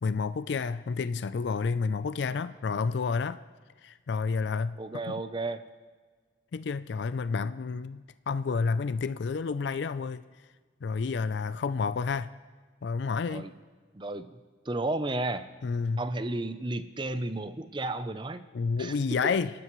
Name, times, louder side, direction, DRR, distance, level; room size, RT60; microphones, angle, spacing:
voice 1, 0.0-3.4 3.8-4.8 5.1-5.2 6.5-10.2 10.8-12.3 12.8-13.5 15.6-16.0 18.5-19.5, left 5 dB, 65° left, 13 dB, 0.4 m, -30 dB
voice 2, 4.8-5.6 13.3-13.5 13.9-14.4 14.6-15.5 16.0-18.4 18.8-19.0, right 2 dB, 25° right, 11 dB, 0.6 m, -33 dB
26.0 x 12.5 x 3.1 m, 1.4 s
head